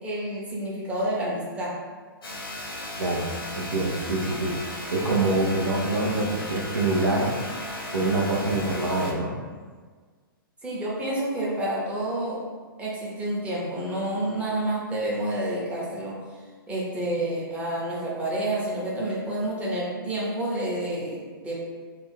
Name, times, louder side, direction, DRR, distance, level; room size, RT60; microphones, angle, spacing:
voice 1, 0.0-1.8 10.6-12.5 12.8-16.2 16.7-21.6, right 1 dB, 10° right, -7 dB, 0.7 m, -29 dB
sound 1, 2.2-9.1, left 1 dB, 75° left, 0.7 m, -35 dB
voice 2, 3.0-3.3 3.5-7.3 7.9-9.4, right 2 dB, 70° right, -1 dB, 0.6 m, -25 dB
2.5 x 2.2 x 3.6 m, 1.5 s
figure-of-eight pair, 110°, 12 cm